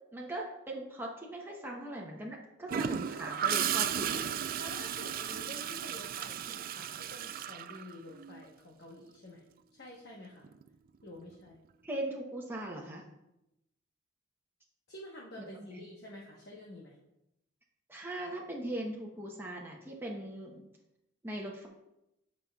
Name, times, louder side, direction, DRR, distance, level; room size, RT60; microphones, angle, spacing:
voice 1, 0.1-4.3 11.8-13.0 15.6-15.9 17.9-20.6 21.2-21.7, right 1 dB, 10° right, -2 dB, 0.9 m, -40 dB
Gurgling / Toilet flush, 2.7-8.4 10.4-10.7, right 9 dB, 50° right, 0.3 m, -34 dB
voice 2, 3.7-4.2 4.6-9.4 9.7-10.5 11.0-11.6 14.9-17.0, left 1 dB, 60° left, -3 dB, 1.1 m, -49 dB
14.5 x 5.4 x 2.3 m, 0.89 s
head